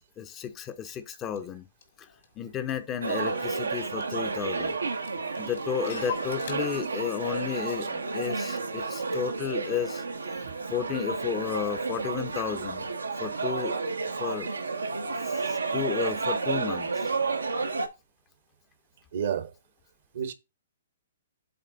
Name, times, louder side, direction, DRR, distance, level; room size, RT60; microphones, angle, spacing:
voice 1, 0.0-1.7 2.0-2.1 2.4-4.7 5.4-10.0 10.7-12.9 13.2-13.8 14.2-14.5 15.2-17.1, left 9 dB, 25° left, 0.7 m, -33 dB
Clock, 1.4-1.5 1.8-3.3 3.6-3.7 3.9-4.5 4.9-6.5, left 9 dB, 65° left, 2.1 m, -42 dB
sound 1, 3.0-17.9, right 4 dB, 85° right, 0.9 m, -31 dB
voice 2, 19.1-19.5 20.1-20.3, right 8 dB, 55° right, 1.0 m, -30 dB
8.0 x 3.7 x 3.9 m
figure-of-eight pair, 125°, 0 cm